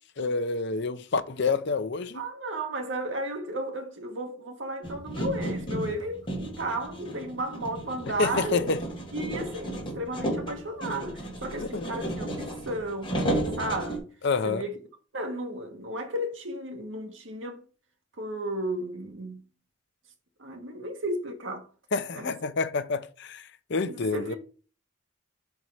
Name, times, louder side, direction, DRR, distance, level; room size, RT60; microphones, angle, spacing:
voice 1, 0.2-2.2 8.2-8.8 11.6-11.9 14.2-14.6 21.9-24.3, left 4 dB, 60° left, 0.7 m, -28 dB
voice 2, 2.1-8.7 9.1-13.2 13.6-14.1 14.4-14.8 15.1-17.6 18.2-19.5 20.4-21.7 22.1-22.3 23.8-24.4, right 1 dB, 65° right, 1.5 m, -34 dB
sound 1, 4.8-14.0, right 1 dB, 25° left, 1.8 m, -33 dB
5.2 x 4.7 x 5.7 m
head